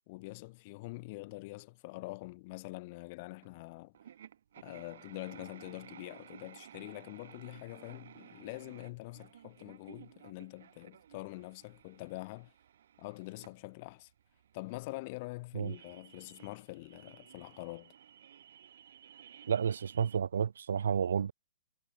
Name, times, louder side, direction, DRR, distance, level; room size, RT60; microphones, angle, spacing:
voice 1, 0.1-3.9 4.6-12.5 13.0-14.1 14.5-17.9, left 23 dB, 25° left, 5.0 m, -45 dB
sound 1, 3.4-3.5 3.9-20.2, right 9 dB, 55° right, 7.0 m, -56 dB
voice 2, 19.5-21.3, right 7 dB, 85° right, 0.8 m, -31 dB
hypercardioid pair, 180°, 0 cm